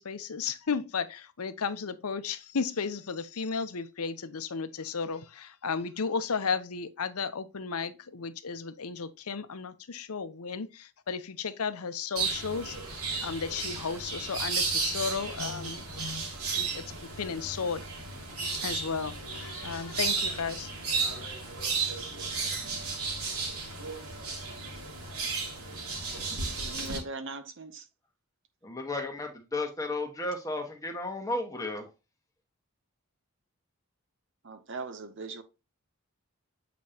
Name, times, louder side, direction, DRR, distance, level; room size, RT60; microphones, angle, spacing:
voice 1, 0.0-16.2 16.5-18.2 18.5-20.7, left 5 dB, 80° left, 0.7 m, -34 dB
sound 1, 12.1-27.0, right 4 dB, 75° right, 2.9 m, -34 dB
voice 2, 26.6-27.9 34.4-35.4, right 3 dB, 55° right, 0.8 m, -40 dB
voice 3, 28.6-31.9, left 2 dB, 15° left, 1.3 m, -33 dB
8.5 x 5.1 x 2.8 m
head